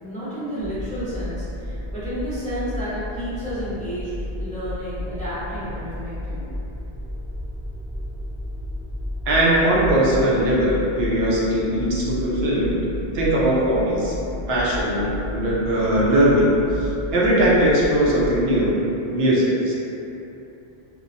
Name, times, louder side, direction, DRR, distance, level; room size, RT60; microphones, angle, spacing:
voice 1, 0.0-6.5, equal, 10° left, -12 dB, 0.4 m, -31 dB
sound 1, 0.6-18.7, left 1 dB, 35° right, 0.8 m, -33 dB
voice 2, 9.3-12.8 13.1-14.1 14.5-18.8 19.1-19.7, right 1 dB, 80° right, -6 dB, 0.8 m, -20 dB
2.7 x 2.0 x 2.5 m, 2.9 s
omnidirectional pair, 1.0 m